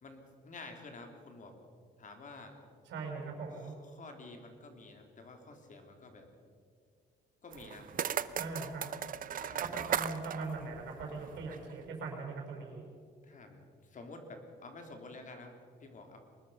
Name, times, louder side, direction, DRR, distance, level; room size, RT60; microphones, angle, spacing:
voice 1, 0.0-1.6 2.0-2.6 3.6-6.3 7.4-8.1 9.3-10.0 13.2-16.2, left 3 dB, 45° left, 4 dB, 3.6 m, -50 dB
voice 2, 2.9-3.7 8.4-8.9 9.6-12.8, right 4 dB, 90° right, 0 dB, 5.2 m, -40 dB
sound 1, 7.5-11.7, right 9 dB, 50° right, 0.8 m, -37 dB
24.0 x 20.5 x 5.9 m, 2.2 s
cardioid pair, 120°, 18 cm